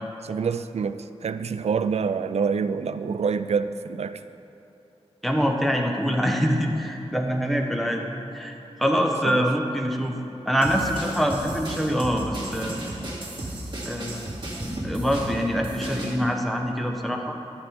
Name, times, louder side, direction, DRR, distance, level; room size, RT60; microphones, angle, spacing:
voice 1, 0.2-4.2 9.2-9.4, right 6 dB, 75° right, 11 dB, 0.4 m, -26 dB
voice 2, 5.2-8.0 8.3-10.2 10.5-12.8 13.8-17.4, equal, ahead, 2 dB, 0.9 m, -25 dB
sound 1, 10.6-16.2, right 1 dB, 45° right, 2.2 m, -34 dB
11.0 x 9.5 x 3.5 m, 2.9 s
wide cardioid pair, 90°, 11 cm